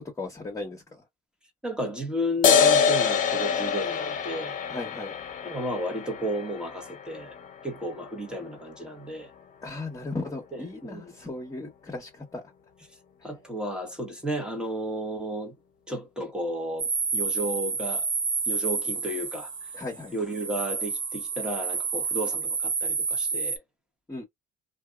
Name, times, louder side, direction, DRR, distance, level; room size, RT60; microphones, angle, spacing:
voice 1, 0.2-1.0 4.7-5.1 9.6-12.4 19.7-20.1 24.1-24.2, left 2 dB, 20° left, 1.3 m, -36 dB
voice 2, 1.6-4.6 5.4-7.4 7.6-9.3 10.5-11.1 13.2-15.5 15.9-18.1 18.5-19.7 20.1-23.6, equal, 5° right, 1.2 m, -33 dB
sound 1, 2.4-9.4, left 6 dB, 55° left, 0.7 m, -26 dB
sound 2, 16.8-23.6, right 5 dB, 30° right, 0.8 m, -29 dB
2.7 x 2.4 x 2.4 m
cardioid pair, 110°, 17 cm